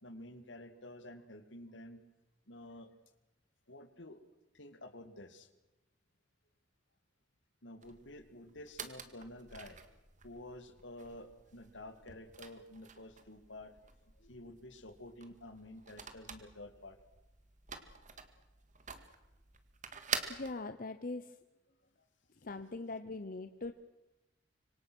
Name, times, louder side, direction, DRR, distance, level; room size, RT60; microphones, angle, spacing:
voice 1, 0.0-2.0 2.5-2.9 3.7-4.2 4.5-5.5 7.6-10.0 10.2-13.8 14.1-17.0, left 1 dB, 70° left, 10 dB, 2.2 m, -50 dB
sound 1, 7.8-20.5, right 6 dB, 40° right, 2.0 m, -47 dB
voice 2, 20.3-21.4 22.4-23.7, left 3 dB, 50° left, 10 dB, 0.9 m, -41 dB
26.0 x 24.5 x 6.3 m, 1.0 s
head